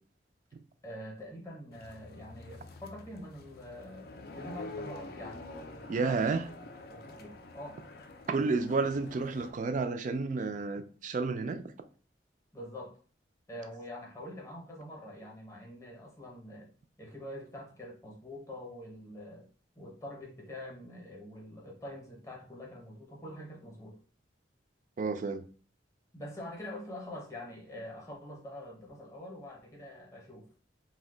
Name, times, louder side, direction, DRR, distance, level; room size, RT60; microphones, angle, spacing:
voice 1, 0.8-6.4 6.8-7.9 12.5-13.0 13.5-16.7 17.0-19.5 19.8-24.0 26.1-30.5, left 1 dB, 15° left, 0.7 m, -45 dB
sound 1, 1.7-9.5, left 2 dB, 55° left, 0.4 m, -47 dB
voice 2, 5.9-6.5 8.3-11.6 25.0-25.4, right 4 dB, 40° right, 0.3 m, -31 dB
2.7 x 2.1 x 3.7 m
head